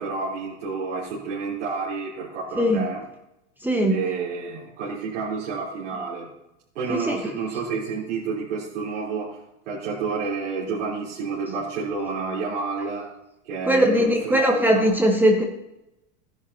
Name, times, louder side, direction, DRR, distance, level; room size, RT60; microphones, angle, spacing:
voice 1, 0.0-3.0 3.9-6.3 6.7-9.4 9.7-13.1 13.5-14.9, right 4 dB, 75° right, -8 dB, 4.1 m, -30 dB
voice 2, 3.6-4.0 6.9-7.2 13.6-15.4, equal, 5° right, 1 dB, 1.4 m, -20 dB
14.5 x 10.5 x 2.9 m, 0.88 s
hypercardioid pair, 110°, 36 cm